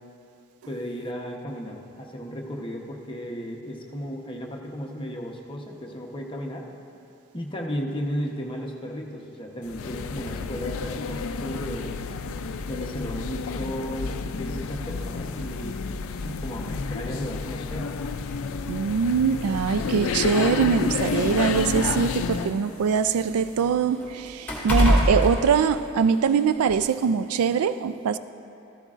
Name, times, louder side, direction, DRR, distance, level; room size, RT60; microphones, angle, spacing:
voice 1, 0.7-6.6 7.3-11.9 12.7-15.8 16.2-18.0, equal, 25° left, 0.9 m, -34 dB
sound 1, 9.7-22.6, left 4 dB, 65° left, 0.4 m, -30 dB
sound 2, 17.7-17.8 18.9-19.0 19.4-19.6 20.5-22.5 22.9-26.3 26.7-26.8, equal, 5° left, 2.3 m, -25 dB
voice 2, 18.7-28.2, right 6 dB, 80° right, 0.3 m, -23 dB
14.0 x 13.5 x 2.5 m
head